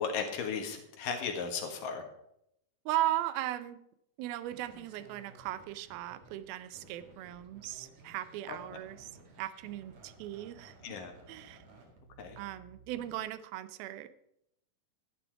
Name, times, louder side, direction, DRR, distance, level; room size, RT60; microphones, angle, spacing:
voice 1, 0.0-2.0 8.5-8.6 10.8-11.1 12.2-12.4, left 6 dB, 70° left, 4 dB, 3.0 m, -35 dB
voice 2, 2.9-3.8 4.2-9.1 9.4-10.8 11.3-11.6 12.4-14.1, right 14 dB, 85° right, 14 dB, 2.6 m, -37 dB
sound 1, 4.4-13.2, right 3 dB, 50° right, 3.0 m, -57 dB
11.5 x 11.0 x 4.6 m, 0.76 s
omnidirectional pair, 4.2 m